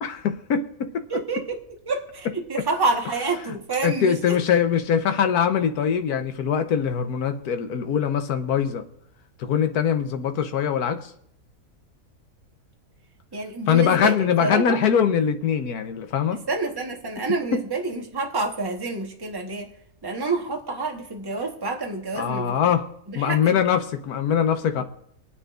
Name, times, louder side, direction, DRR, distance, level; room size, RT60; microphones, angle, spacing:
voice 1, 0.0-1.1 3.8-8.8 9.4-11.0 13.7-16.4 17.5-17.6 22.2-22.9 23.2-24.8, left 8 dB, 75° left, 8 dB, 1.4 m, -22 dB
voice 2, 1.1-1.6 1.8-4.4 13.3-14.8 16.3-19.7 20.0-22.6 23.1-23.6 24.8-24.9, right 3 dB, 15° right, 1 dB, 1.2 m, -28 dB
24.0 x 9.8 x 2.5 m, 0.72 s
omnidirectional pair, 1.7 m